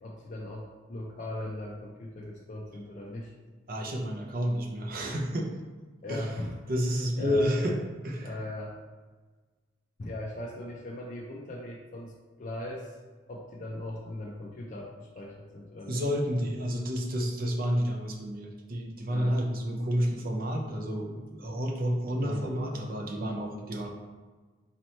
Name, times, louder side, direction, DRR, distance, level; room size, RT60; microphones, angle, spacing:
voice 1, 0.0-3.3 6.0-6.6 7.2-7.8 8.2-8.7 10.0-13.0 13.3-16.0 19.1-19.4 22.2-22.5, left 1 dB, 40° left, -2 dB, 0.4 m, -39 dB
voice 2, 3.7-5.5 6.1-6.3 6.7-7.7 8.0-8.3 15.9-23.9, equal, 45° right, 0 dB, 0.6 m, -30 dB
4.2 x 2.8 x 3.1 m, 1.4 s
head